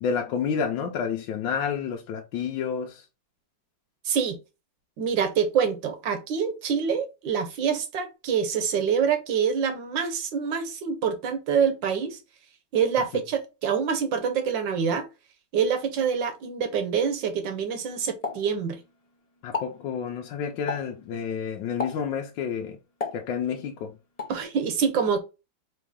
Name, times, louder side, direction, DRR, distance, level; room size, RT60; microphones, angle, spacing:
voice 1, 0.0-3.0 19.4-22.8 23.1-23.9, left 7 dB, 75° left, 1.3 m, -29 dB
voice 2, 4.0-4.4 5.0-12.2 12.7-15.1 15.5-18.8 24.3-25.2, right 7 dB, 75° right, 1.5 m, -26 dB
Explosion, 18.2-19.1 19.4-19.8 20.7-21.0 21.8-22.2 23.0-23.7 24.2-24.4, left 4 dB, 50° left, 0.4 m, -33 dB
4.0 x 3.1 x 3.6 m
omnidirectional pair, 2.1 m